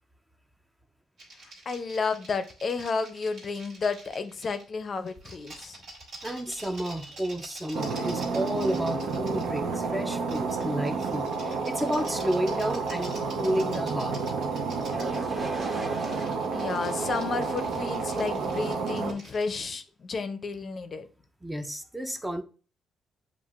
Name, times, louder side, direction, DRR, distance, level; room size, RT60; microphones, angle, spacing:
sound 1, 1.2-4.6 5.1-9.5 10.3-19.5, right 1 dB, 70° right, 1.7 m, -48 dB
voice 1, 1.7-5.8 16.5-21.1, left 4 dB, 45° left, 0.5 m, -32 dB
voice 2, 6.2-14.2 21.4-22.4, equal, 10° right, 0.4 m, -31 dB
sound 2, 7.7-19.1, right 4 dB, 85° right, 0.7 m, -30 dB
sound 3, 14.9-18.8, right 1 dB, 25° right, 1.0 m, -40 dB
7.1 x 2.4 x 2.4 m
cardioid pair, 90°, 0 cm